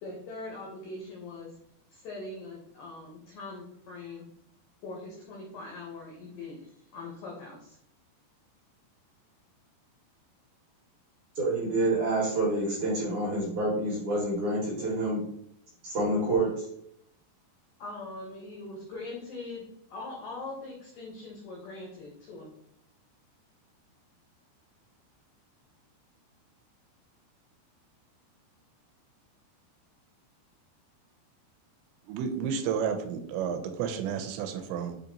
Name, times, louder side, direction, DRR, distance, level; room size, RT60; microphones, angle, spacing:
voice 1, 0.0-1.6 1.9-4.3 4.8-7.8 17.8-22.5, left 2 dB, 85° left, -1 dB, 1.8 m, -42 dB
voice 2, 11.4-15.2 15.8-16.6, right 2 dB, 65° right, -5 dB, 1.9 m, -28 dB
voice 3, 32.1-35.0, right 7 dB, 85° right, 7 dB, 2.7 m, -31 dB
7.0 x 2.8 x 2.6 m, 0.69 s
omnidirectional pair, 5.0 m